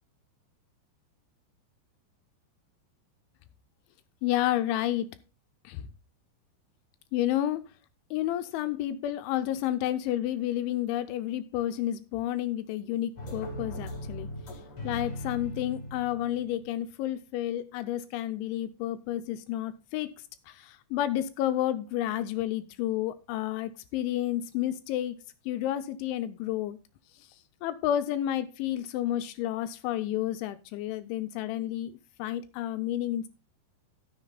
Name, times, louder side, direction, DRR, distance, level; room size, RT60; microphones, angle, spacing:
voice 1, 4.2-5.1 5.6-5.8 7.1-7.7 8.1-14.3 14.8-20.2 20.5-26.8 27.2-27.3 27.6-33.3, left 12 dB, 80° left, 11 dB, 2.9 m, -31 dB
sound 1, 13.2-16.8, equal, 35° left, 3.7 m, -39 dB
14.0 x 6.6 x 4.0 m, 0.30 s
omnidirectional pair, 5.7 m